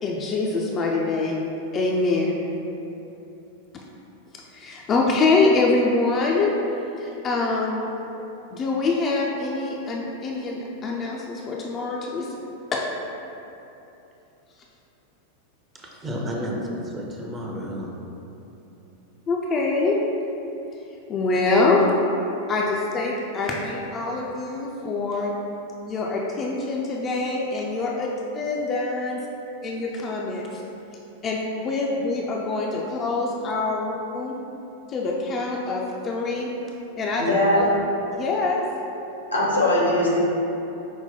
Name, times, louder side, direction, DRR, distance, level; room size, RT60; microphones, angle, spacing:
voice 1, 0.0-1.4 1.7-2.4 4.5-6.5 7.0-7.9 8.5-12.4 12.7-12.8 19.3-20.0 21.1-21.9 22.5-25.3 25.9-29.2 29.6-30.4 31.2-34.4 34.9-36.5 37.0-37.6 38.1-38.6, left 3 dB, 25° left, -2 dB, 0.4 m, -24 dB
voice 2, 15.7-18.0, equal, 20° right, -1 dB, 0.6 m, -31 dB
voice 3, 37.2-37.7 39.3-40.3, left 1 dB, 85° left, -5 dB, 1.0 m, -20 dB
5.4 x 2.1 x 4.1 m, 3.0 s
figure-of-eight pair, 90°, 0 cm